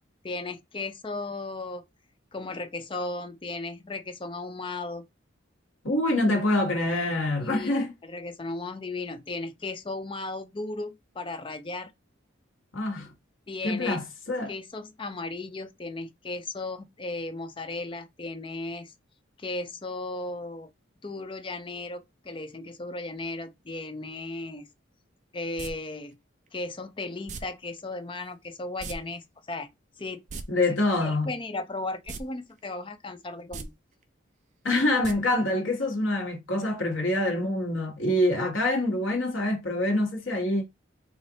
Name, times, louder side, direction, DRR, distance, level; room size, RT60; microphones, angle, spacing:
voice 1, 0.2-1.8 2.3-5.0 7.4-11.9 13.5-14.0 14.5-18.9 19.4-20.7 21.0-24.7 25.3-26.2 26.5-29.7 30.0-30.2 31.0-33.7, left 2 dB, 25° left, 0.5 m, -36 dB
voice 2, 5.8-7.9 12.7-13.1 13.6-14.5 30.5-31.3 34.6-40.6, left 1 dB, 75° left, 1.4 m, -25 dB
sound 1, 25.6-25.7 27.3-27.4 28.8-29.0 29.2-29.3 30.1-30.4 32.0-32.2 32.6-32.7 33.4-33.6 35.0-35.1 35.5-35.6, right 4 dB, 40° right, 0.4 m, -37 dB
3.4 x 2.5 x 3.9 m
head